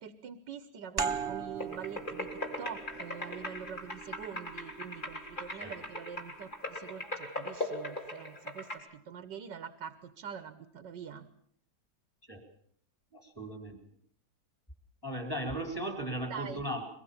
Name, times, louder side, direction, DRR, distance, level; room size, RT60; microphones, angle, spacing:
voice 1, 0.0-11.3 16.3-16.6, right 7 dB, 85° right, 11 dB, 1.8 m, -44 dB
sound 1, 1.0-6.3, right 6 dB, 35° right, 1.5 m, -40 dB
sound 2, 1.6-8.8, left 1 dB, 30° left, 4.0 m, -40 dB
voice 2, 13.1-13.8 15.0-16.9, right 1 dB, 10° left, 4 dB, 4.4 m, -37 dB
22.5 x 22.5 x 7.2 m, 0.65 s
omnidirectional pair, 1.8 m